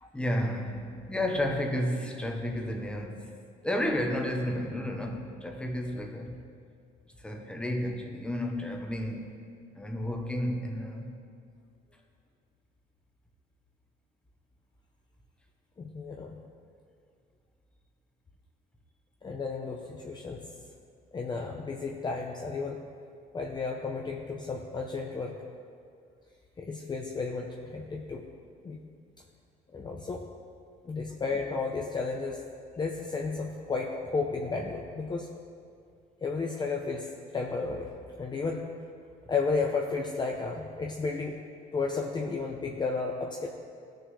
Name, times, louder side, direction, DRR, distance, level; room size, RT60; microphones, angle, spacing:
voice 1, 0.1-3.4 3.6-6.4 7.2-9.3 9.7-11.1, left 1 dB, 5° left, 1.2 m, -32 dB
voice 2, 15.8-16.4 19.2-20.5 21.1-22.9 23.3-25.4 26.6-28.3 28.6-28.8 29.7-30.2 30.8-32.4 32.8-35.3 36.2-37.9 38.2-38.7 39.3-41.4 41.7-43.5, left 4 dB, 25° left, 0.7 m, -33 dB
16.0 x 6.4 x 3.3 m
cardioid pair, 110°, 17 cm